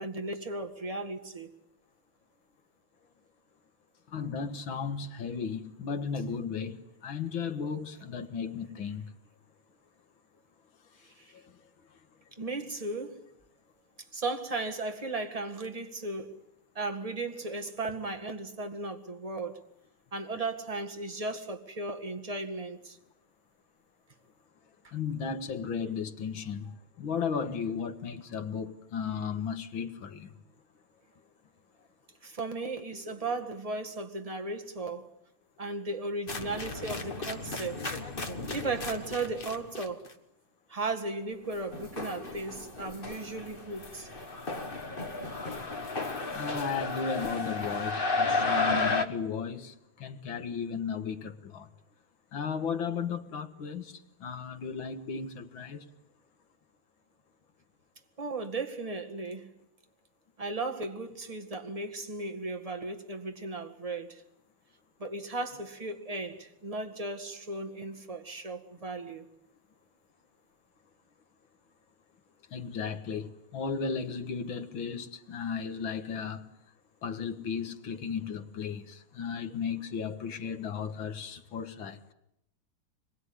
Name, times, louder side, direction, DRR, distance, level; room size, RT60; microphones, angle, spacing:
voice 1, 0.0-1.5 11.2-11.3 12.4-13.3 14.1-16.4 16.8-19.6 20.1-23.0 24.8-24.9 32.2-35.1 35.6-37.9 38.5-40.1 40.7-44.1 58.2-59.5 60.4-64.2 65.0-69.3, right 3 dB, 20° right, 1.9 m, -36 dB
voice 2, 4.1-9.1 11.3-11.4 24.9-30.3 46.3-51.7 52.3-55.9 72.5-76.5 77.0-82.0, left 6 dB, 70° left, 2.2 m, -35 dB
sound 1, 36.3-40.1 41.5-49.1, left 3 dB, 30° left, 1.4 m, -33 dB
25.0 x 22.0 x 9.8 m
omnidirectional pair, 2.2 m